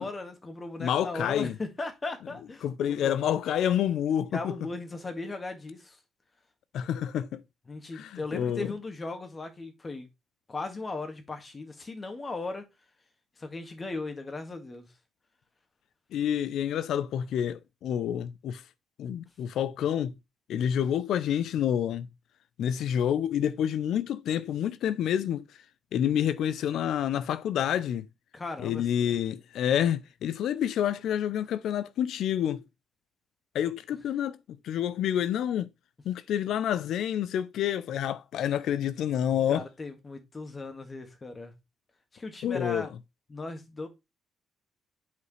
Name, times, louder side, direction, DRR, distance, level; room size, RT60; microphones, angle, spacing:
voice 1, 0.0-3.4 4.3-6.0 7.7-10.1 10.5-12.6 13.4-14.9 28.3-29.1 39.5-41.5 42.1-42.9 43.3-43.9, left 3 dB, 30° left, 1.8 m, -37 dB
voice 2, 0.8-1.5 2.6-4.5 6.7-7.4 8.0-8.7 16.1-18.6 19.0-20.1 20.5-22.1 22.6-25.5 25.9-28.1 28.6-32.6 33.5-35.7 36.0-39.6 42.4-42.9, left 10 dB, 75° left, 0.5 m, -28 dB
8.3 x 4.9 x 3.2 m
cardioid pair, 90°, 0 cm